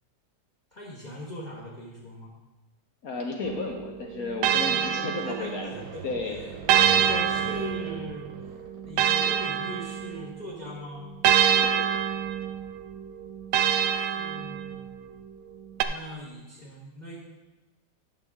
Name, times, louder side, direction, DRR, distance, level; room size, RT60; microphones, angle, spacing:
voice 1, 0.7-2.3 4.7-6.0 6.7-11.1 13.9-15.2 15.8-17.2, left 1 dB, 25° left, -6 dB, 1.4 m, -40 dB
voice 2, 3.0-5.7 6.0-6.5 11.6-11.9, left 3 dB, 60° left, 1 dB, 1.1 m, -33 dB
sound 1, 3.4-5.9 6.7-10.5 11.2-15.0 15.8-15.9, right 9 dB, 85° right, 1.3 m, -26 dB
sound 2, 5.4-10.5 11.2-11.3 11.7-12.0, right 7 dB, 65° right, 1.0 m, -43 dB
11.5 x 6.6 x 3.6 m, 1.1 s
omnidirectional pair, 2.0 m